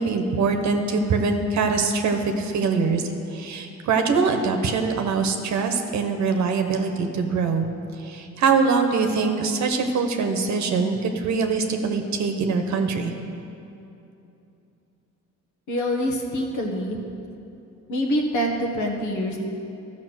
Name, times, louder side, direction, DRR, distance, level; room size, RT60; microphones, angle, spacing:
voice 1, 0.0-3.0 3.3-7.7 8.0-13.1, right 4 dB, 70° right, 5 dB, 1.0 m, -23 dB
voice 2, 15.7-17.0 17.9-19.4, equal, 75° left, 0 dB, 1.5 m, -25 dB
12.5 x 5.9 x 6.3 m, 2.8 s
cardioid pair, 90°, 30 cm